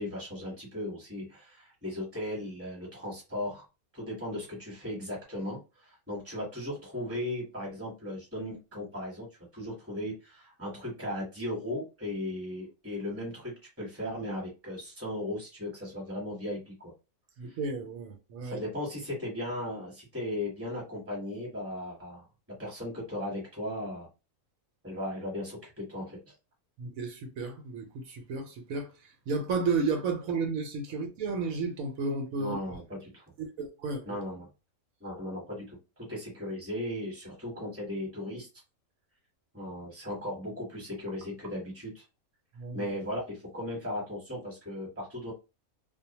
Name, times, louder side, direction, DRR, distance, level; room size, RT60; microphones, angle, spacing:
voice 1, 0.0-3.6 3.9-9.3 9.5-16.9 17.5-17.6 18.4-22.3 22.6-24.1 24.8-26.3 32.4-33.2 34.0-34.5 35.0-35.8 36.1-38.5 39.5-42.0 42.7-45.3, left 1 dB, 10° right, 1.1 m, -37 dB
voice 2, 17.4-18.6 26.8-32.5 33.4-34.1 42.6-42.9, right 4 dB, 80° right, 1.0 m, -33 dB
2.4 x 2.1 x 2.8 m
omnidirectional pair, 1.5 m